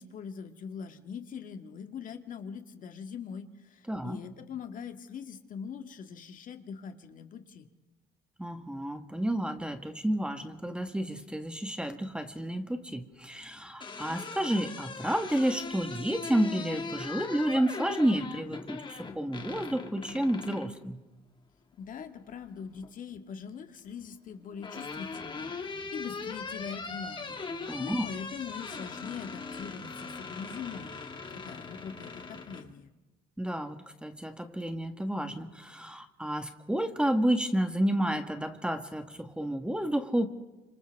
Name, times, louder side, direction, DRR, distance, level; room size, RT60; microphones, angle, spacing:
voice 1, 0.0-7.7 21.8-32.9, left 6 dB, 50° left, 6 dB, 1.9 m, -42 dB
voice 2, 3.9-4.2 8.4-21.0 27.7-28.0 33.4-40.3, right 1 dB, 5° right, 7 dB, 1.5 m, -30 dB
sound 1, 13.5-20.7 22.2-22.9 24.1-32.7, left 4 dB, 30° left, 2.0 m, -40 dB
sound 2, 24.9-32.7, right 4 dB, 60° right, 7.9 m, -57 dB
29.5 x 26.5 x 3.6 m, 1.1 s
cardioid pair, 110°, 17 cm